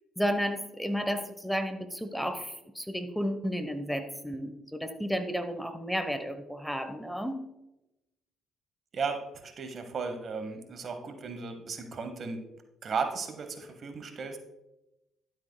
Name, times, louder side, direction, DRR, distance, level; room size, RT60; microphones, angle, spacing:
voice 1, 0.2-7.4, equal, ahead, 9 dB, 1.0 m, -32 dB
voice 2, 8.9-12.5 12.8-14.4, right 5 dB, 50° right, 7 dB, 1.1 m, -35 dB
12.0 x 7.7 x 2.2 m, 0.94 s
supercardioid pair, 60°, 0 cm